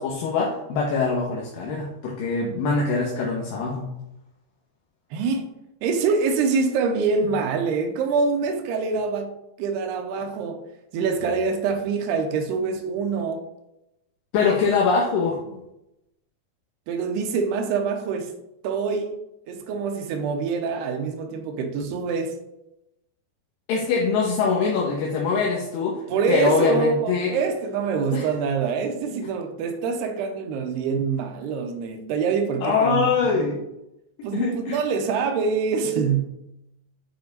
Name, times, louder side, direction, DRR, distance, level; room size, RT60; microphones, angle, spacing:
voice 1, 0.0-3.9 14.3-15.6 23.7-26.0 26.3-27.4 28.1-28.2 32.6-33.6 34.3-34.8, left 4 dB, 70° left, 2.5 m, -23 dB
voice 2, 5.1-5.5 5.8-9.3 9.6-10.7 10.9-13.4 16.9-18.3 18.6-19.2 19.5-22.4 26.1-33.6 34.2-36.3, right 5 dB, 85° right, 2.9 m, -25 dB
9.4 x 4.5 x 4.0 m
omnidirectional pair, 4.6 m